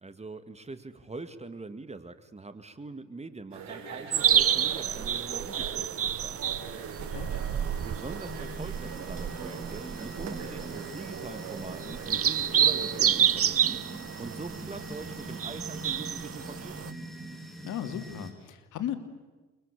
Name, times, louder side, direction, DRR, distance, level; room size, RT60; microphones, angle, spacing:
voice 1, 0.0-6.4 7.8-13.8 14.2-17.0, right 3 dB, 20° right, 11 dB, 2.2 m, -43 dB
sound 1, 3.5-13.3, right 5 dB, 65° right, 5.8 m, -42 dB
sound 2, 4.1-16.9, right 9 dB, 50° right, 1.1 m, -29 dB
sound 3, 6.4-18.3, right 1 dB, ahead, 6.6 m, -44 dB
voice 2, 17.6-18.9, left 10 dB, 80° left, 7 dB, 3.0 m, -36 dB
29.0 x 23.5 x 8.4 m, 1.2 s
cardioid pair, 90°, 30 cm